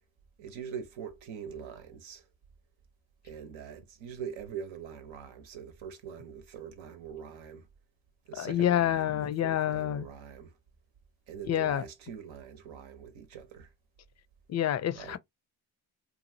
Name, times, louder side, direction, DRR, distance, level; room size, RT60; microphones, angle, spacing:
voice 1, 0.4-2.3 3.2-7.7 8.3-10.5 11.3-13.7 14.9-15.2, right 7 dB, 80° right, 0.9 m, -43 dB
voice 2, 8.4-10.1 11.5-11.8 14.5-15.2, left 11 dB, 40° left, 0.4 m, -28 dB
2.8 x 2.3 x 2.6 m
supercardioid pair, 60°, 46 cm